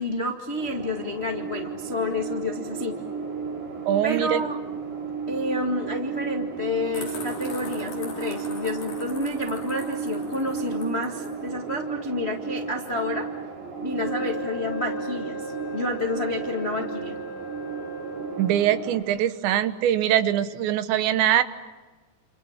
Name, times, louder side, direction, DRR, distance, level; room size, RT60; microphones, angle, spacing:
voice 1, 0.0-2.9 4.0-4.5 5.3-13.3 13.8-17.1, left 2 dB, 75° left, 2 dB, 0.6 m, -29 dB
sound 1, 0.6-19.0, right 5 dB, 60° right, 5.6 m, -34 dB
voice 2, 3.9-4.4 18.4-21.4, right 11 dB, 80° right, 11 dB, 3.5 m, -22 dB
sound 2, 6.9-11.4, left 3 dB, 50° left, 6.6 m, -41 dB
Wind instrument woodwind instrument, 14.0-18.7, equal, 25° left, 4.3 m, -37 dB
29.0 x 28.0 x 7.3 m, 1.3 s
omnidirectional pair, 5.1 m